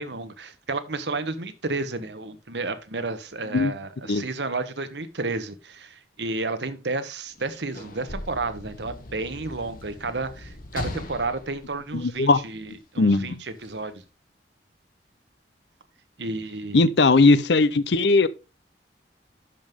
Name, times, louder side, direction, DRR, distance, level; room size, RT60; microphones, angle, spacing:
voice 1, 0.0-14.0 16.2-16.9, right 3 dB, 75° right, 1.2 m, -32 dB
Sliding door / Slam, 7.3-12.7 13.6-13.7, left 1 dB, 50° left, 1.5 m, -39 dB
voice 2, 11.9-12.4 13.0-13.4 16.7-18.3, left 3 dB, 75° left, 0.7 m, -19 dB
11.5 x 5.4 x 3.6 m
head